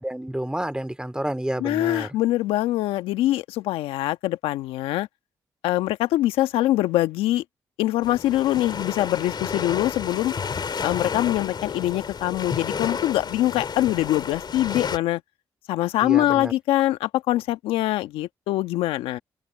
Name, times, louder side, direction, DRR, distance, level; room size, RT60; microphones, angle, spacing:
voice 1, 0.0-2.1 16.0-16.5, right 1 dB, 10° right, 2.8 m, -29 dB
voice 2, 1.6-5.1 5.6-7.4 7.8-10.3 10.8-15.2 15.7-19.2, left 15 dB, 85° left, 1.4 m, -23 dB
sound 1, 8.0-15.0, left 6 dB, 55° left, 3.4 m, -31 dB
open air
hypercardioid pair, 45°, 9 cm